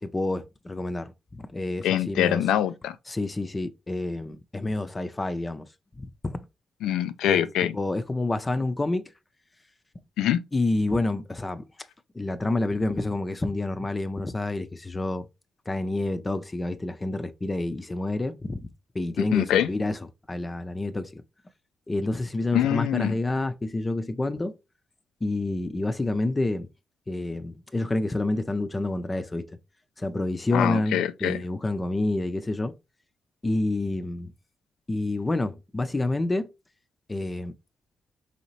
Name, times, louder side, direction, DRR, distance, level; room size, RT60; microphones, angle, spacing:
voice 1, 0.0-2.5 3.1-5.7 6.0-6.4 7.3-7.4 7.7-9.1 10.5-11.6 12.1-15.3 15.7-18.7 18.9-21.2 21.9-24.6 25.2-26.7 27.1-29.6 30.0-32.8 33.4-34.3 34.9-36.5 37.1-37.5, left 2 dB, 30° left, 0.6 m, -28 dB
voice 2, 1.8-2.9 6.8-7.8 10.2-10.4 19.3-19.7 22.5-23.1 30.5-31.4, left 11 dB, 90° left, 0.3 m, -24 dB
4.8 x 2.7 x 3.0 m
supercardioid pair, 50°, 0 cm